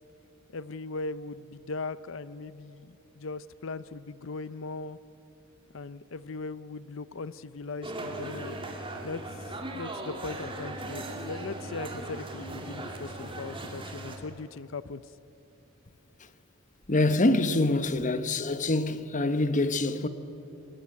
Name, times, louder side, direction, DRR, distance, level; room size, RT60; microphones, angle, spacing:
voice 1, 0.5-5.0 5.7-8.6 9.0-15.0, left 3 dB, 65° left, 0.6 m, -39 dB
sound 1, 7.8-14.2, right 1 dB, 25° right, 2.7 m, -38 dB
voice 2, 16.9-20.1, left 2 dB, 35° left, 1.1 m, -25 dB
23.5 x 20.5 x 9.6 m
head